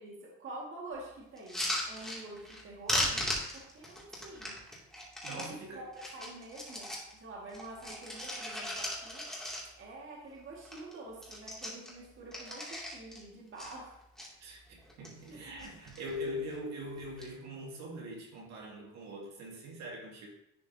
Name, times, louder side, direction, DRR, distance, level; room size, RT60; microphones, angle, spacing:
voice 1, 0.0-4.6 5.2-5.9 6.1-9.2 9.8-14.0 15.3-15.4, right 2 dB, 45° right, -3 dB, 1.9 m, -47 dB
sound 1, 1.4-2.6 2.9-5.5 5.9-7.1 7.5-10.0 10.3-10.4 10.6-10.9 11.2-13.2 13.6-14.3 14.8-15.3 15.6-16.1 17.0-17.3, left 1 dB, ahead, 2.6 m, -37 dB
voice 2, 5.2-5.9 14.4-20.3, equal, 65° right, -1 dB, 2.2 m, -42 dB
11.0 x 4.7 x 2.8 m, 0.84 s
cardioid pair, 95°, 30 cm